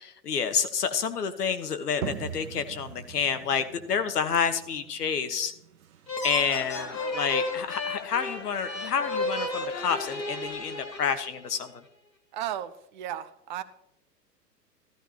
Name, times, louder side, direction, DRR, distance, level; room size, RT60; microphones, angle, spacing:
voice 1, 0.0-5.5 6.2-11.7, left 6 dB, 65° left, 10 dB, 1.4 m, -29 dB
sound 1, 2.0-7.5, right 9 dB, 55° right, 0.9 m, -42 dB
sound 2, 6.1-11.6, left 2 dB, 90° left, 2.0 m, -33 dB
sound 3, 6.2-11.4, left 4 dB, 15° left, 0.3 m, -44 dB
voice 2, 12.3-13.6, right 11 dB, 30° right, 13 dB, 0.6 m, -34 dB
14.0 x 13.5 x 2.9 m, 0.78 s
figure-of-eight pair, 110°, 49 cm